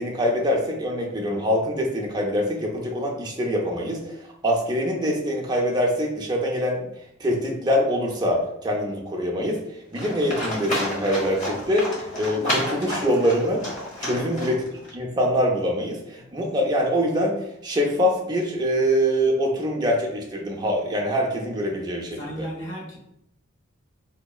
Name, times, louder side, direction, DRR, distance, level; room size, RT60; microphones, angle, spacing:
voice 1, 0.0-6.8 7.2-13.6 14.0-14.6 14.9-22.5, equal, 20° right, -1 dB, 0.5 m, -24 dB
Livestock farm animals working animals, 9.9-14.9, left 1 dB, 35° left, 0.9 m, -30 dB
voice 2, 22.2-23.0, equal, 65° left, -2 dB, 1.1 m, -35 dB
4.1 x 2.8 x 2.3 m, 0.76 s
head